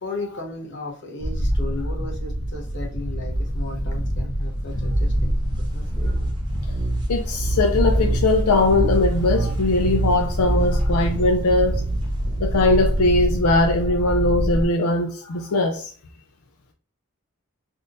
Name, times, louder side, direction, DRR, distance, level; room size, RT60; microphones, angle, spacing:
voice 1, 0.0-5.4 5.7-6.1, left 2 dB, 55° left, 1.0 m, -35 dB
sound 1, 1.2-14.7, equal, 35° left, 0.6 m, -25 dB
sound 2, 5.9-13.9, right 2 dB, 20° right, 0.8 m, -29 dB
voice 2, 7.1-11.8 12.4-15.9, left 2 dB, 85° left, 0.5 m, -20 dB
3.5 x 2.6 x 2.5 m
head